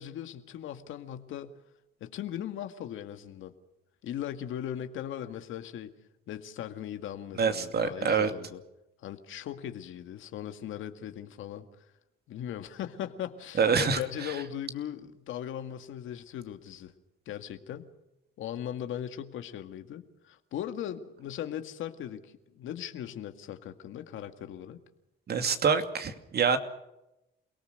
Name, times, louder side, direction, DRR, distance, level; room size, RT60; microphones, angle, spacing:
voice 1, 0.0-1.5 2.0-3.5 4.0-5.9 6.3-8.6 9.0-11.8 12.3-16.9 17.3-17.9 18.4-24.8, left 10 dB, 80° left, 8 dB, 2.0 m, -39 dB
voice 2, 7.4-8.3 13.6-14.3 25.3-26.6, right 6 dB, 55° right, 8 dB, 2.6 m, -26 dB
28.5 x 18.5 x 6.6 m, 0.89 s
cardioid pair, 90°, 20 cm